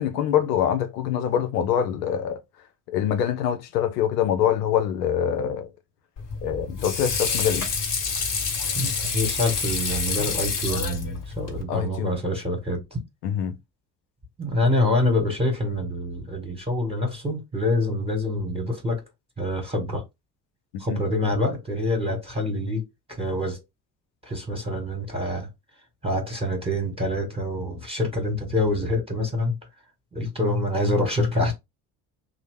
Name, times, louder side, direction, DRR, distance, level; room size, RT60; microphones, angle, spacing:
voice 1, 0.0-2.4 2.9-5.7 6.4-7.7 11.7-12.1 13.2-13.5 20.9-21.0, left 9 dB, 90° left, 0.6 m, -24 dB
Water / Sink (filling or washing), 6.2-11.6, left 5 dB, 40° left, 1.1 m, -28 dB
voice 2, 8.7-13.0 14.4-19.0 19.4-20.0 20.8-23.6 24.2-25.5 26.0-29.6 30.1-31.5, left 1 dB, 10° right, 1.3 m, -26 dB
2.8 x 2.0 x 3.5 m
hypercardioid pair, 55°, 47 cm